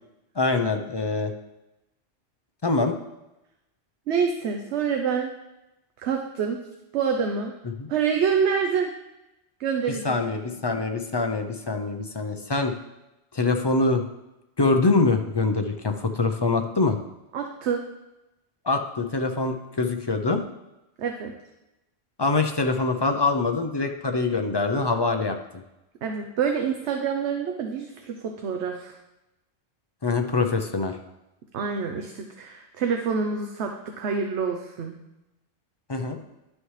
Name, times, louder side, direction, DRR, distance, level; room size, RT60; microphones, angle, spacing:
voice 1, 0.4-1.3 2.6-3.0 7.8-7.9 9.9-12.7 13.3-14.0 14.6-17.0 18.7-20.4 22.2-25.4 30.0-31.0 35.9-36.2, left 3 dB, 35° left, 5 dB, 0.4 m, -24 dB
voice 2, 4.1-5.3 6.0-6.6 6.9-7.5 7.9-8.9 9.6-10.5 17.3-17.8 21.0-21.3 26.0-29.0 31.5-34.9, right 6 dB, 75° right, 3 dB, 1.0 m, -27 dB
10.5 x 6.4 x 3.2 m, 0.95 s
omnidirectional pair, 1.2 m